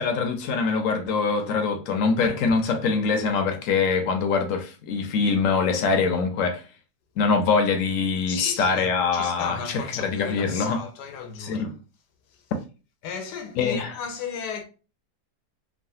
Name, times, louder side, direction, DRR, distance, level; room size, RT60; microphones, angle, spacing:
voice 1, 0.0-6.6 7.2-10.8 11.4-11.7 13.6-13.9, left 5 dB, 70° left, 0.8 m, -24 dB
voice 2, 8.3-11.7 12.3-12.4 13.0-14.6, left 6 dB, 90° left, 1.2 m, -35 dB
3.1 x 2.4 x 2.6 m
omnidirectional pair, 1.7 m